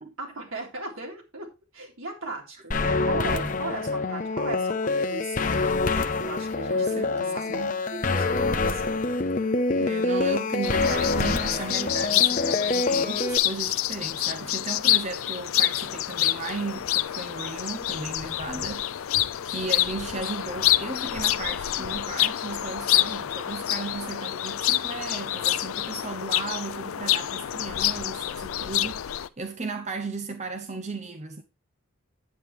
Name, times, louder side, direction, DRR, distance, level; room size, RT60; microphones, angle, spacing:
voice 1, 0.2-5.5 6.2-7.6 7.9-9.1, right 3 dB, 75° right, 3.6 m, -37 dB
sound 1, 2.7-13.4, left 3 dB, 40° left, 0.8 m, -26 dB
voice 2, 6.7-7.8 9.8-19.1 19.4-31.4, right 3 dB, 35° right, 0.7 m, -36 dB
sound 2, 10.6-29.3, left 13 dB, 80° left, 0.4 m, -27 dB
9.3 x 8.9 x 3.2 m
head